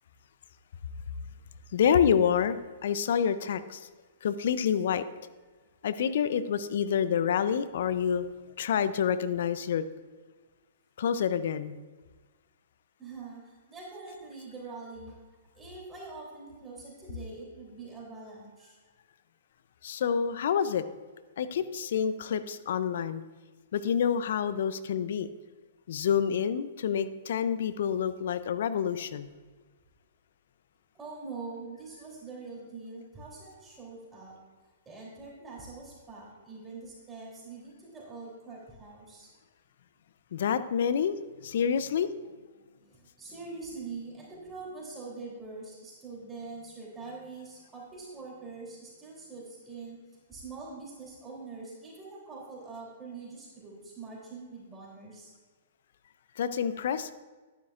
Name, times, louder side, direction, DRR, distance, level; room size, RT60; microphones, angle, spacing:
voice 1, 1.7-3.9 4.2-5.0 5.8-8.3 8.6-9.8 11.0-11.8 19.8-20.8 21.4-23.2 23.7-25.3 25.9-29.3 40.3-41.2 41.4-42.1 56.4-57.1, left 8 dB, 65° left, 13 dB, 0.5 m, -28 dB
voice 2, 13.0-15.2 15.6-18.7 30.9-34.4 34.8-39.3 42.5-50.0 50.3-55.3, right 3 dB, 15° right, -4 dB, 3.2 m, -44 dB
11.5 x 9.7 x 2.5 m, 1.3 s
hypercardioid pair, 125°, 0 cm